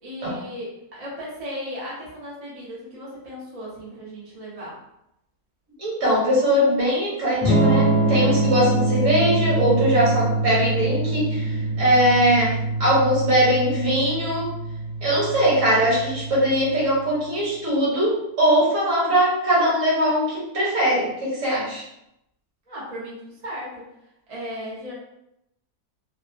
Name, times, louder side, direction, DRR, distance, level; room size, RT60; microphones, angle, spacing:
voice 1, 0.0-4.8 22.7-23.9 24.3-24.9, equal, 35° right, -7 dB, 0.7 m, -36 dB
voice 2, 5.8-12.5 12.8-14.5 15.0-21.8, equal, 55° right, -7 dB, 1.5 m, -21 dB
Electric guitar / Strum, 7.4-17.2, right 2 dB, 85° left, 1.4 m, -24 dB
3.4 x 2.0 x 2.4 m, 0.82 s
omnidirectional pair, 1.7 m